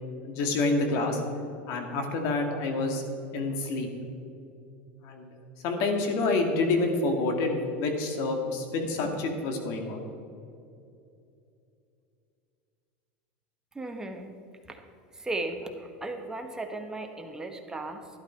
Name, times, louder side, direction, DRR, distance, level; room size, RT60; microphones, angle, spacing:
voice 1, 0.2-1.2 1.7-3.0 3.3-3.9 5.0-5.3 5.6-10.1, left 3 dB, 55° left, 4 dB, 2.2 m, -28 dB
voice 2, 13.7-14.3 14.6-14.8 15.1-18.1, right 2 dB, 10° right, 4 dB, 1.3 m, -36 dB
12.5 x 11.0 x 4.6 m, 2.6 s
supercardioid pair, 120°, 6 cm